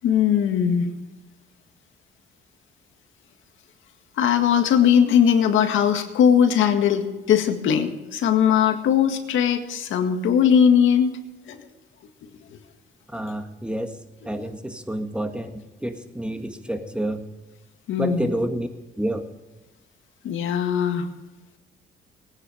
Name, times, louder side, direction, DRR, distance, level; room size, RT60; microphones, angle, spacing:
voice 1, 0.0-0.9 4.2-11.1 11.5-11.6 17.9-18.3 20.2-21.1, left 8 dB, 80° left, 6 dB, 1.9 m, -19 dB
voice 2, 13.1-14.0 14.2-17.2 18.0-18.7 19.0-19.3, right 1 dB, 5° right, 6 dB, 1.9 m, -29 dB
19.5 x 9.9 x 5.1 m, 1.2 s
cardioid pair, 90°, 20 cm